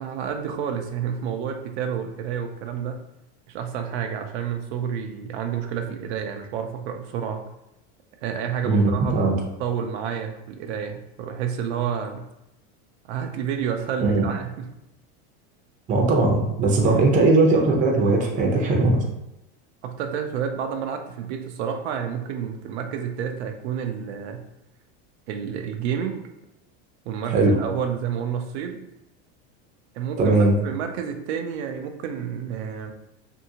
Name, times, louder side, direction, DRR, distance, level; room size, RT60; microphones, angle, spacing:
voice 1, 0.0-3.0 3.5-7.4 8.2-12.2 13.1-14.7 16.9-17.1 19.8-24.4 25.3-26.2 27.1-28.8 29.9-30.3 30.6-32.9, right 8 dB, 80° right, 5 dB, 0.5 m, -29 dB
voice 2, 8.6-9.4 14.0-14.2 15.9-19.0 27.3-27.6 30.2-30.5, right 3 dB, 25° right, 0 dB, 0.5 m, -19 dB
2.7 x 2.6 x 2.7 m, 0.88 s
supercardioid pair, 145°, 33 cm